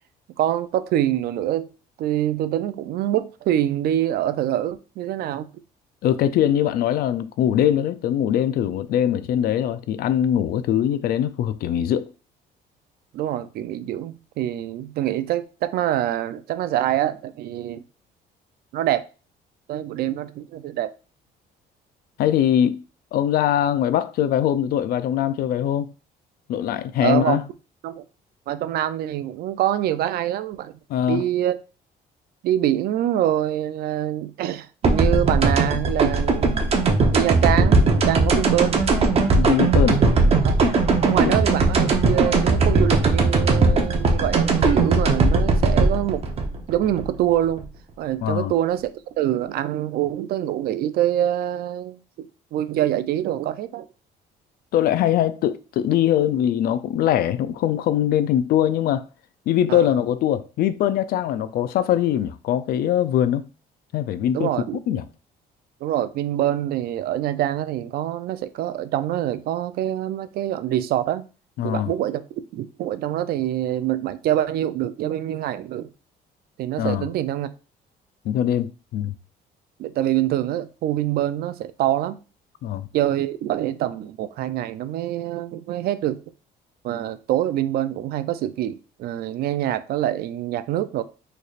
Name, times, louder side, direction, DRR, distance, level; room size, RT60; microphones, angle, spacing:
voice 1, 0.4-1.7 2.0-5.5 13.1-17.8 18.7-19.1 19.7-20.9 27.0-27.4 27.8-28.0 28.5-30.7 31.1-31.6 32.4-36.6 37.1-38.8 40.4-40.6 41.0-46.3 46.7-47.7 48.0-53.9 59.7-59.9 64.3-64.8 65.8-71.3 71.6-72.2 72.5-75.9 76.6-77.5 79.8-82.2 82.9-86.2 86.8-91.0, right 12 dB, 65° right, 0.4 m, -25 dB
voice 2, 6.0-12.1 22.2-22.8 23.1-25.9 26.5-27.4 30.9-31.2 39.3-40.0 41.3-41.4 48.2-48.5 54.7-59.1 59.5-63.4 63.9-64.5 64.9-65.0 71.6-71.9 76.8-77.1 78.2-79.1 82.6-82.9, left 10 dB, 65° left, 0.4 m, -22 dB
sound 1, 34.8-47.6, right 3 dB, 35° right, 0.8 m, -19 dB
4.0 x 3.2 x 2.4 m
cardioid pair, 110°, 17 cm